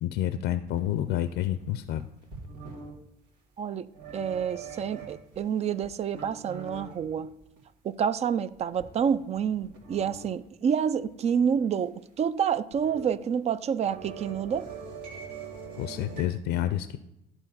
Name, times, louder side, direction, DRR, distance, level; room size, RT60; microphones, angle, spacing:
voice 1, 0.0-2.0 15.8-17.0, left 12 dB, 80° left, 0.4 m, -29 dB
sound 1, 0.6-3.0 3.9-5.4 5.8-7.6 7.9-8.0 8.5-10.3 10.7-10.8 11.0-11.1 11.4-11.7 12.5-13.1 13.4-16.2, right 5 dB, 85° right, 2.5 m, -43 dB
voice 2, 4.1-7.3 7.8-14.7, right 7 dB, 40° right, 0.4 m, -28 dB
10.5 x 4.5 x 5.6 m
cardioid pair, 110°, 17 cm